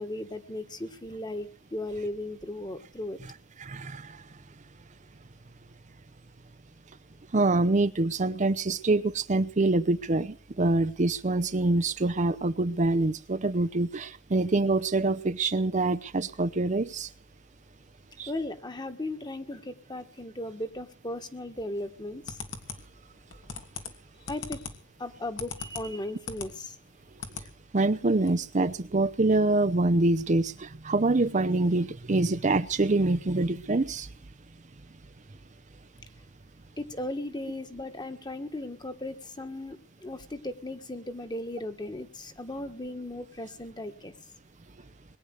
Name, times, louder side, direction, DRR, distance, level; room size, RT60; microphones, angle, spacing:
voice 1, 0.0-3.2 18.3-22.4 24.3-24.7 25.0-26.8 36.8-44.1, left 1 dB, 25° left, 1.8 m, -36 dB
voice 2, 3.6-4.1 7.3-17.1 18.2-18.3 27.7-34.1, right 2 dB, 40° right, 0.7 m, -25 dB
sound 1, 21.9-26.5 26.9-27.5 27.8-27.9 28.2-28.3, left 5 dB, 75° left, 2.9 m, -40 dB
21.5 x 10.0 x 6.6 m
head